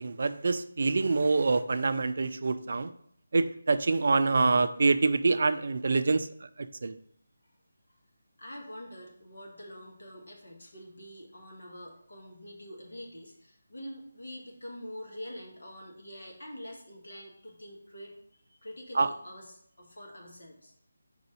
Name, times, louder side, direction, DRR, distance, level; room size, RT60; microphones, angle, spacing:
voice 1, 0.0-2.9 3.3-6.3 6.6-6.9 18.9-19.1, right 3 dB, 55° right, 11 dB, 0.4 m, -26 dB
voice 2, 8.4-18.1 18.5-20.7, equal, 70° left, 0 dB, 1.7 m, -45 dB
4.7 x 4.0 x 5.2 m, 0.67 s
figure-of-eight pair, 155°, 0 cm